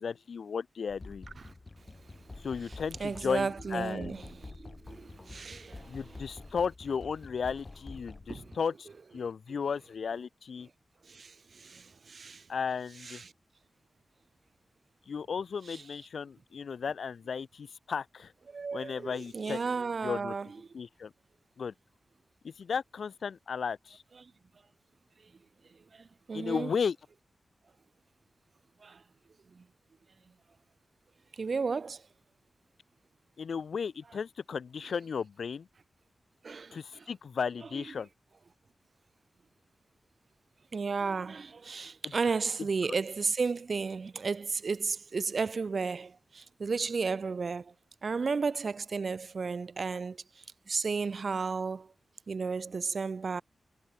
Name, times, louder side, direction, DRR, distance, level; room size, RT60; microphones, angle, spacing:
voice 1, 0.0-1.3 2.4-4.2 5.9-8.9 9.1-10.7 12.5-13.2 15.1-18.3 18.7-19.6 20.0-20.3 20.7-21.1 21.6-21.7 22.4-24.0 26.3-27.0 33.4-35.7 36.7-38.1, left 6 dB, 80° left, 0.7 m, -34 dB
sound 1, 0.9-8.6, left 3 dB, 30° left, 0.8 m, -48 dB
voice 2, 3.0-6.2 8.3-8.5 11.1-12.4 13.0-13.3 15.7-15.8 18.5-20.5 25.9-26.7 28.8-29.0 29.5-29.6 31.4-32.0 36.4-37.0 37.7-37.8 40.7-47.7 48.0-50.2 50.7-51.9 52.3-53.4, right 4 dB, 55° right, 0.7 m, -33 dB
wide cardioid pair, 90°, 0 cm